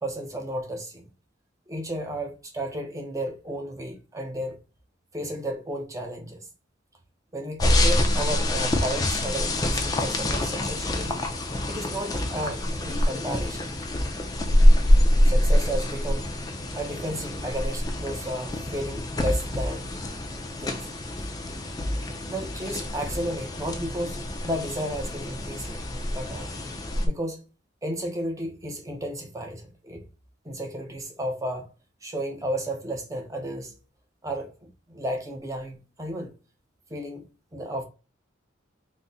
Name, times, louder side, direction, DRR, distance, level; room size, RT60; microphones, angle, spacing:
voice 1, 0.0-1.0 1.7-4.6 5.1-6.5 7.3-11.2 11.6-13.7 15.2-16.3 16.7-19.9 20.6-20.9 21.8-21.9 22.2-25.8 26.1-26.5 27.0-27.4 27.8-30.0 30.4-31.7 32.0-33.8 34.2-36.3 36.9-37.3 37.5-37.8, right 1 dB, 15° right, 0.6 m, -33 dB
sound 1, 7.6-27.1, left 1 dB, 20° left, 0.4 m, -25 dB
4.0 x 2.1 x 3.6 m
head